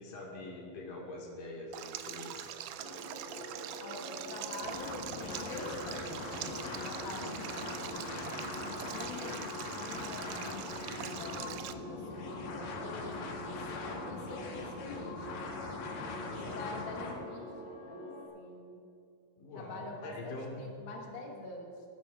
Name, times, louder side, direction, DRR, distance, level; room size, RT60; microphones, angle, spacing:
voice 1, 0.0-2.5 16.3-16.8 19.4-20.6, left 2 dB, 85° left, -1 dB, 3.3 m, -44 dB
Stream, 1.7-11.7, right 11 dB, 80° right, 2.0 m, -43 dB
sound 1, 2.8-18.3, equal, 50° right, 2.9 m, -46 dB
voice 2, 3.8-8.0 8.5-15.5 16.4-17.5 17.9-18.0 18.3-18.8 19.5-21.8, left 3 dB, 50° left, 0 dB, 1.7 m, -46 dB
sound 2, 4.6-17.1, left 4 dB, 70° left, 2.5 m, -42 dB
19.0 x 11.5 x 2.4 m, 2.6 s
omnidirectional pair, 3.7 m